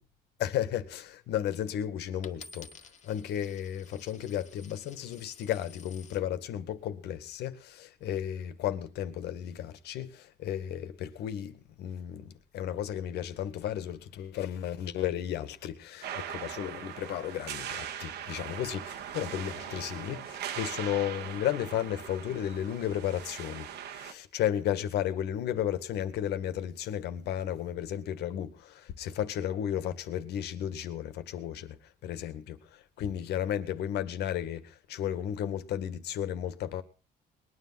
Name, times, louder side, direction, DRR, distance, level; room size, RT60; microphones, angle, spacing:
voice 1, 0.4-2.7 3.0-36.8, left 10 dB, 75° left, 2.0 m, -34 dB
Coin (dropping), 2.2-6.2 6.9-7.4, left 5 dB, 45° left, 1.9 m, -52 dB
sound 1, 16.0-24.1, right 9 dB, 75° right, 2.1 m, -40 dB
21.0 x 10.0 x 5.9 m
cardioid pair, 110°, 17 cm